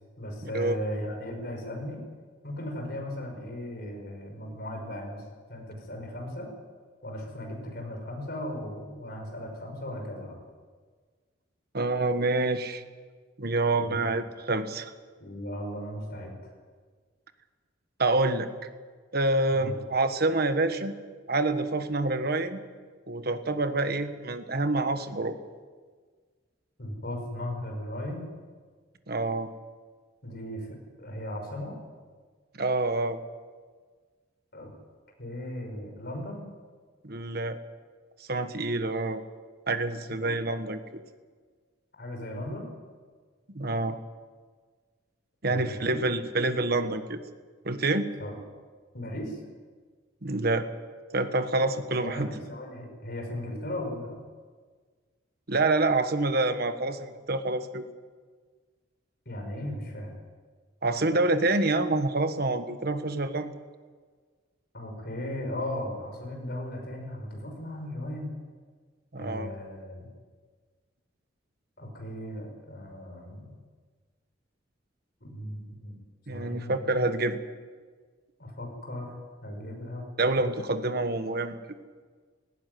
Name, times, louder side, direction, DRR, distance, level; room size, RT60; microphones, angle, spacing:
voice 1, 0.2-2.0 2.4-6.5 7.0-10.4 13.8-14.1 15.2-16.4 19.5-19.7 26.8-28.3 30.2-31.7 34.5-34.7 35.2-36.5 40.2-40.3 42.0-42.7 45.5-46.0 48.2-48.3 48.9-49.4 51.7-54.2 59.3-60.1 64.7-68.3 69.2-70.1 71.8-73.6 75.2-75.9 76.3-77.0 78.4-80.1, left 1 dB, 55° left, 2 dB, 5.6 m, -37 dB
voice 2, 11.7-12.8 13.4-14.9 18.0-18.5 19.1-20.9 21.3-22.6 23.1-25.4 29.1-29.5 32.6-33.2 37.0-37.6 38.3-39.2 39.7-40.8 43.5-44.0 45.4-47.2 47.6-48.1 50.2-50.7 51.1-52.3 55.5-57.8 60.8-63.5 69.1-69.5 76.3-77.4 80.2-81.6, right 2 dB, 55° right, 9 dB, 1.4 m, -27 dB
18.5 x 16.5 x 9.4 m, 1.5 s
head